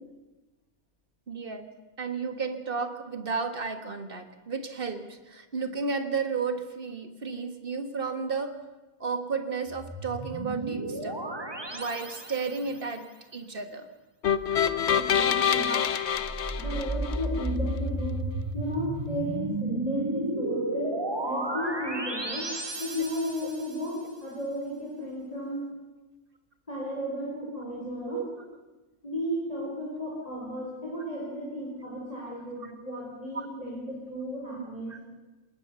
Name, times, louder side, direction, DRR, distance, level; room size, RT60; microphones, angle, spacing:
voice 1, 1.3-1.7 2.0-8.6 9.0-11.2 11.7-13.9 15.4-15.8 28.0-28.2 32.6-32.7 33.3-33.5 34.9-35.0, right 5 dB, 40° right, 8 dB, 1.7 m, -33 dB
sound 1, 9.7-12.8 16.1-23.8, right 1 dB, 20° right, 1.5 m, -33 dB
sound 2, 14.2-17.5, left 8 dB, 55° left, 1.0 m, -26 dB
voice 2, 14.9-15.7 16.6-18.3 18.5-20.9 21.2-22.5 22.8-25.7 26.7-28.2 29.0-35.1, equal, 25° left, -5 dB, 4.9 m, -34 dB
21.0 x 19.5 x 6.9 m, 1.2 s
omnidirectional pair, 1.5 m